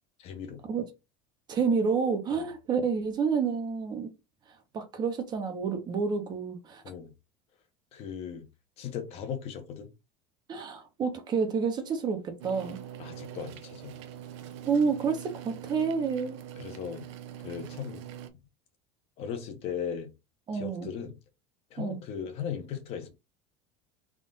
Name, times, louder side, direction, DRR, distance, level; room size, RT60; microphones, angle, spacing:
voice 1, 0.2-0.6 2.3-2.4 6.8-7.1 7.9-8.4 8.8-9.9 13.0-13.9 16.6-17.0 17.4-18.0 19.2-20.1 20.5-21.1 21.7-23.1, left 8 dB, 45° left, 1.0 m, -37 dB
voice 2, 1.5-4.1 4.7-6.8 10.5-12.8 14.7-16.4 20.5-20.9 21.8-22.0, right 5 dB, 30° right, 0.8 m, -29 dB
sound 1, 12.4-18.3, right 10 dB, 85° right, 0.7 m, -43 dB
3.6 x 2.4 x 3.9 m
cardioid pair, 150°, 15 cm